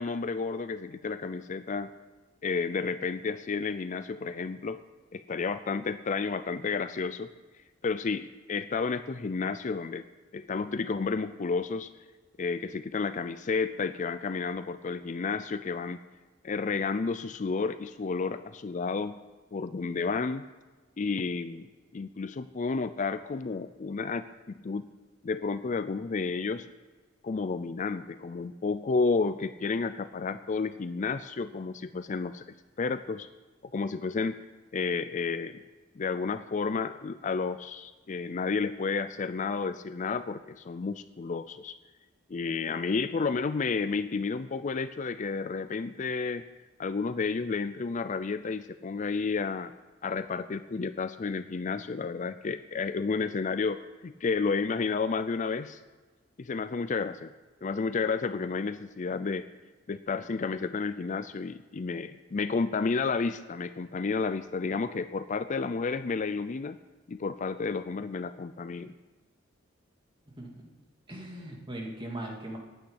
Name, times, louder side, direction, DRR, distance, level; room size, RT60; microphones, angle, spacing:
voice 1, 0.0-1.9 2.4-4.8 5.1-7.3 7.8-10.0 10.3-11.9 12.4-16.0 16.4-19.2 19.5-20.5 21.0-24.8 25.2-26.7 27.2-32.4 32.8-33.3 33.7-34.3 34.7-35.6 36.0-41.7 42.3-46.4 46.8-49.7 50.0-55.8 56.4-57.3 57.6-59.5 59.9-66.8 67.1-68.9, left 4 dB, 40° left, 12 dB, 0.4 m, -31 dB
voice 2, 70.3-70.7 71.1-72.6, right 1 dB, 25° right, -1 dB, 2.6 m, -39 dB
9.3 x 8.6 x 9.8 m, 1.3 s
head